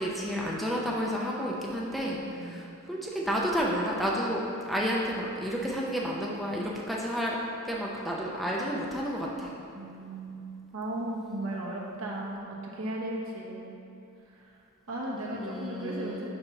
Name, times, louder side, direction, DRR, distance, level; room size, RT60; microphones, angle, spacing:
voice 1, 0.0-7.4 7.6-9.5 15.3-16.2, equal, ahead, -4 dB, 0.5 m, -31 dB
voice 2, 2.2-2.6 9.7-10.4 10.7-13.7 14.3-14.5 14.9-16.3, right 1 dB, 70° right, -3 dB, 1.0 m, -36 dB
6.6 x 3.0 x 5.5 m, 2.8 s
head